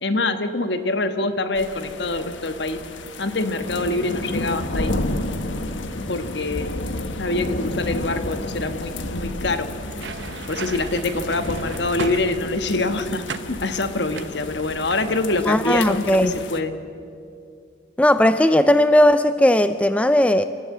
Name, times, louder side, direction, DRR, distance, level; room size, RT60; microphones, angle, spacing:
voice 1, 0.0-2.8 3.2-5.0 6.1-6.7 7.2-9.7 10.5-16.8, left 2 dB, 65° left, 8 dB, 1.4 m, -25 dB
sound 1, 1.6-16.6, left 2 dB, 80° left, 1.4 m, -31 dB
sound 2, 9.8-12.7 13.3-13.6 14.1-15.3 15.6-15.9, right 4 dB, 70° right, 1.0 m, -35 dB
voice 2, 15.5-16.3 18.0-20.4, left 1 dB, 5° left, 11 dB, 0.4 m, -17 dB
28.0 x 13.5 x 8.4 m, 2.5 s
head